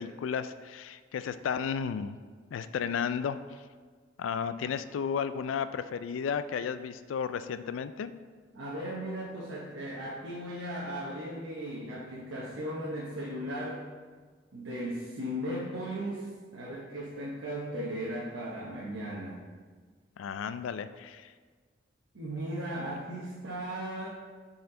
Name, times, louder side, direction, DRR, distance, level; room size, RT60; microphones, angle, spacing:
voice 1, 0.0-2.2 2.5-3.4 4.2-8.1 20.2-21.3, left 7 dB, 85° left, 12 dB, 0.3 m, -33 dB
voice 2, 8.5-13.9 14.5-19.4 22.1-24.1, equal, 90° right, -5 dB, 0.9 m, -37 dB
6.8 x 4.2 x 3.8 m, 1.5 s
head